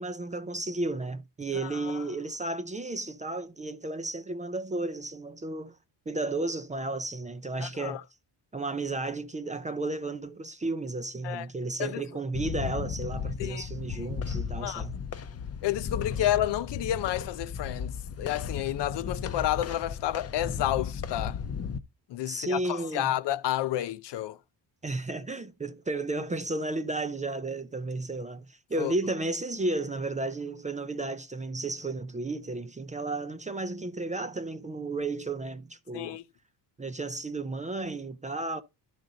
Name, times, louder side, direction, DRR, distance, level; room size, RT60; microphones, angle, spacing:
voice 1, 0.0-5.8 6.1-8.0 8.5-15.0 16.2-16.3 22.3-23.1 24.8-36.2 36.8-38.6, right 2 dB, 15° right, 0.4 m, -33 dB
voice 2, 1.6-2.0 7.6-8.0 11.2-11.5 11.8-12.0 13.4-13.7 14.6-14.9 15.6-21.4 22.1-24.4 28.8-28.9 35.9-36.2, left 13 dB, 70° left, 0.6 m, -30 dB
sound 1, 12.3-21.8, left 6 dB, 35° left, 0.7 m, -35 dB
12.0 x 5.2 x 3.9 m
cardioid pair, 135°, 44 cm